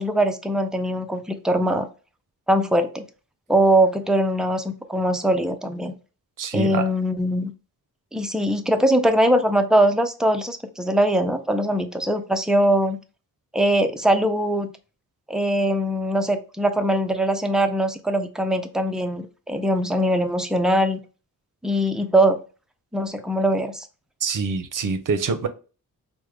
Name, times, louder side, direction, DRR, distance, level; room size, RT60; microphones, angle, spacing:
voice 1, 0.0-1.9 2.5-3.0 3.5-5.9 6.5-7.5 8.1-13.0 13.5-14.7 15.3-21.0 21.6-22.4 22.9-23.8, right 1 dB, ahead, 6 dB, 0.4 m, -21 dB
voice 2, 6.4-6.9 24.2-25.5, right 5 dB, 60° right, 10 dB, 0.6 m, -25 dB
4.7 x 2.1 x 3.3 m, 0.34 s
wide cardioid pair, 125°, 36 cm